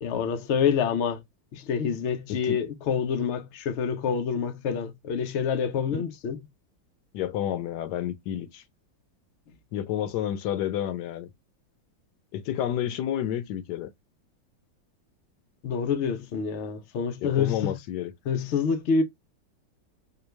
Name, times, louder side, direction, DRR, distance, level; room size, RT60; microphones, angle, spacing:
voice 1, 0.0-1.2 1.5-6.4 15.6-17.7 18.3-19.0, left 6 dB, 90° left, 0.5 m, -27 dB
voice 2, 2.3-2.6 5.9-6.0 7.1-8.6 9.7-11.3 12.3-13.9 17.2-18.1, left 10 dB, 75° left, 1.1 m, -30 dB
4.5 x 2.2 x 3.2 m
omnidirectional pair, 2.0 m